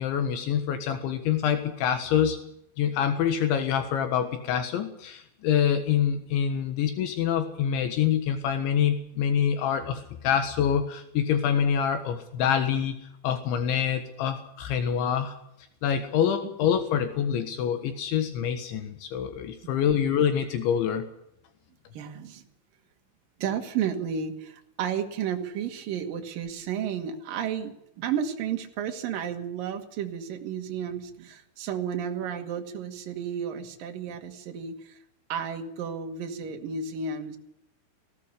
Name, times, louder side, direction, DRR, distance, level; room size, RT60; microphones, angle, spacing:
voice 1, 0.0-2.4 2.8-13.0 13.2-15.3 15.8-21.1, left 8 dB, 75° left, 8 dB, 3.8 m, -26 dB
voice 2, 21.9-22.4 23.4-35.0 35.3-37.4, right 7 dB, 55° right, 4 dB, 3.4 m, -32 dB
19.0 x 16.5 x 8.3 m, 0.78 s
omnidirectional pair, 5.5 m